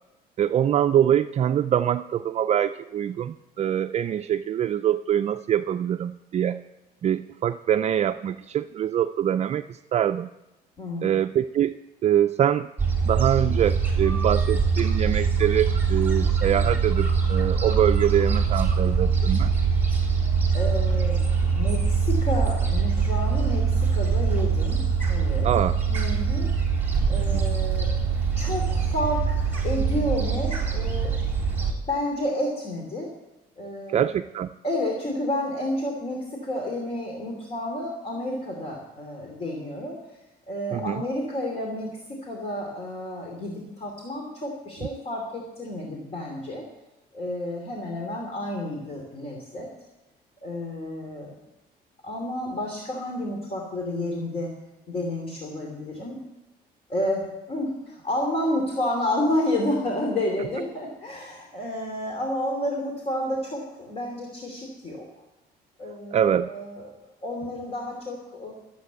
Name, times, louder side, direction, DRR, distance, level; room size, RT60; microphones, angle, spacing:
voice 1, 0.4-6.6 7.0-10.3 11.0-11.7 12.0-12.7 13.1-19.5 25.4-25.7 27.2-27.4 33.9-34.5 40.7-41.0 66.1-66.5, right 10 dB, 40° right, 10 dB, 0.4 m, -24 dB
voice 2, 10.8-11.1 20.5-25.5 25.9-26.5 27.1-29.4 29.6-31.1 31.9-33.1 33.6-34.1 34.6-40.0 40.5-46.6 47.1-49.7 50.4-51.3 52.0-54.5 54.9-56.2 56.9-65.1 65.8-66.9 67.2-68.5, left 1 dB, 35° left, 1 dB, 2.8 m, -30 dB
Gull seagull, 12.8-31.7, right 6 dB, 10° right, 3.8 m, -23 dB
14.5 x 8.3 x 8.2 m, 0.98 s
cardioid pair, 110°, 17 cm